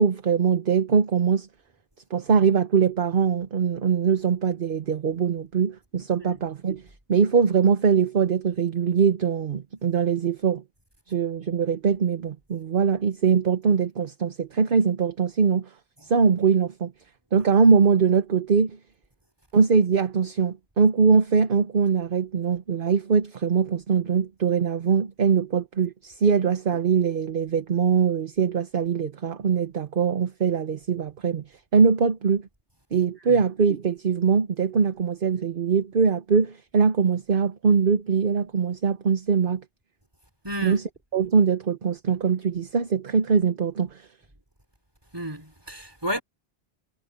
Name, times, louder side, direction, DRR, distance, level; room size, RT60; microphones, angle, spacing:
voice 1, 0.0-1.5 2.1-6.8 7.1-10.6 11.1-15.7 16.1-16.9 17.3-18.8 19.5-31.4 31.7-32.4 32.9-39.6 40.6-40.8 41.1-44.0, right 6 dB, 50° right, 1.0 m, -22 dB
voice 2, 40.4-40.8 45.1-46.2, equal, 20° right, 4.5 m, -32 dB
omnidirectional pair, 1.2 m